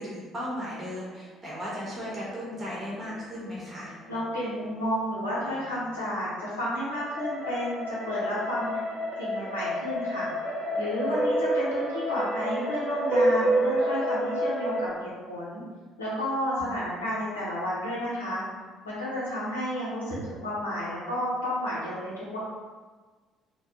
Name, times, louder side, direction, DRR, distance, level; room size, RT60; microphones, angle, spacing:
voice 1, 0.0-4.0 11.1-11.2 16.6-17.1, equal, 35° right, -6 dB, 0.8 m, -36 dB
sound 1, 1.9-4.6 6.9-14.9, equal, 60° right, 0.9 m, -29 dB
voice 2, 4.1-8.7 9.2-10.3 10.8-15.6 16.0-18.4 18.8-22.4, equal, 85° left, -9 dB, 0.8 m, -31 dB
2.5 x 2.2 x 2.8 m, 1.4 s
figure-of-eight pair, 50°, 0 cm